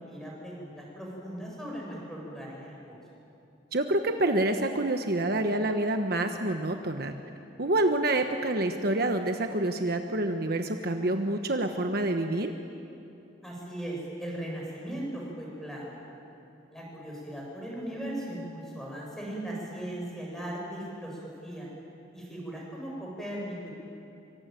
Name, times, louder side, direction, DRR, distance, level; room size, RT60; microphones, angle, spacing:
voice 1, 0.0-2.9 13.4-16.0 16.7-21.7 22.1-23.7, right 1 dB, ahead, -3 dB, 7.6 m, -38 dB
voice 2, 3.7-7.1 7.6-12.5, right 2 dB, 50° right, 5 dB, 1.2 m, -27 dB
25.5 x 25.0 x 9.2 m, 2.8 s
head